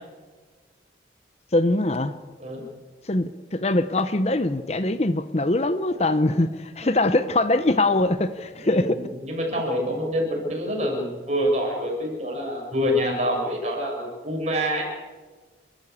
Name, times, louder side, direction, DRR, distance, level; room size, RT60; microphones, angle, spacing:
voice 1, 1.5-2.1 3.0-9.0, left 2 dB, 35° left, 12 dB, 0.8 m, -22 dB
voice 2, 8.6-14.8, equal, 40° right, 0 dB, 6.9 m, -26 dB
29.5 x 13.5 x 8.3 m, 1.3 s
head